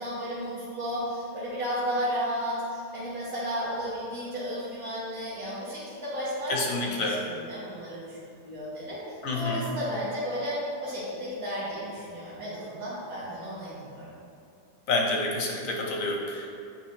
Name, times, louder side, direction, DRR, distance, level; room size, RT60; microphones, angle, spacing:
voice 1, 0.0-14.1, equal, 55° right, -10 dB, 1.7 m, -33 dB
voice 2, 6.5-7.2 9.2-9.7 14.9-16.5, left 2 dB, 60° left, 0 dB, 0.9 m, -28 dB
8.8 x 4.4 x 3.1 m, 2.5 s
omnidirectional pair, 1.8 m